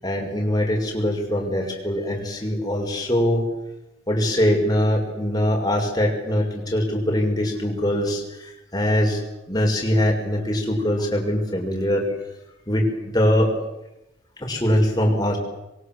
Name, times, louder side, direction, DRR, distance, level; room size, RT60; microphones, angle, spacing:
voice 1, 0.0-3.4 4.1-9.2 9.5-12.0 12.7-13.5 14.4-15.4, equal, 20° left, 0 dB, 6.4 m, -22 dB
27.0 x 23.0 x 8.0 m, 0.93 s
head